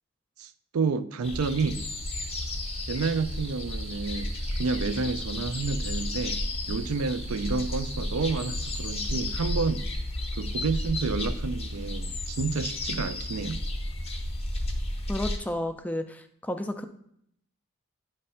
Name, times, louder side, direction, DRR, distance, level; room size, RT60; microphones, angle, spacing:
voice 1, 0.4-1.8 2.9-9.9 10.4-13.6, right 4 dB, 75° right, 0.4 m, -30 dB
sound 1, 1.2-15.4, left 1 dB, 25° left, 0.7 m, -32 dB
sound 2, 1.7-9.5, right 3 dB, 30° right, 0.7 m, -45 dB
voice 2, 15.1-16.8, left 1 dB, 5° left, 0.3 m, -32 dB
9.6 x 3.3 x 5.5 m
head